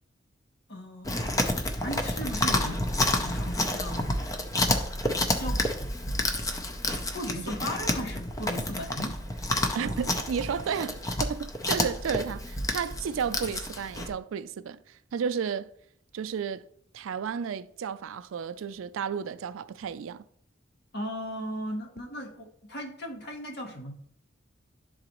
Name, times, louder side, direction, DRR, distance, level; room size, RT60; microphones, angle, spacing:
voice 1, 0.7-1.3 1.8-2.8 3.2-4.1 5.4-5.7 7.1-9.2 20.9-23.9, equal, 55° left, 1.1 m, -36 dB
Chewing mastication, 1.0-14.1, left 1 dB, 15° left, 0.6 m, -29 dB
voice 2, 9.7-15.7 16.1-16.7 16.9-20.2, right 7 dB, 85° right, 0.4 m, -33 dB
11.5 x 3.9 x 3.0 m
head